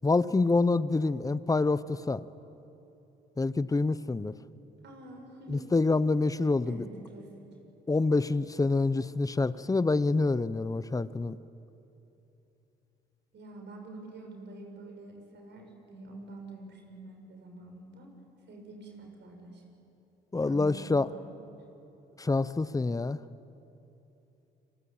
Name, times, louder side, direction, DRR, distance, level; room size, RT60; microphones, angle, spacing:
voice 1, 0.0-2.2 3.4-4.3 5.5-6.8 7.9-11.4 20.3-21.1 22.2-23.2, left 3 dB, 15° left, 16 dB, 0.8 m, -27 dB
voice 2, 4.8-5.7 6.6-7.5 13.3-18.1 18.5-19.6 20.3-21.3, right 2 dB, 60° right, 2 dB, 6.4 m, -46 dB
29.5 x 22.0 x 8.8 m, 3.0 s
cardioid pair, 90°, 20 cm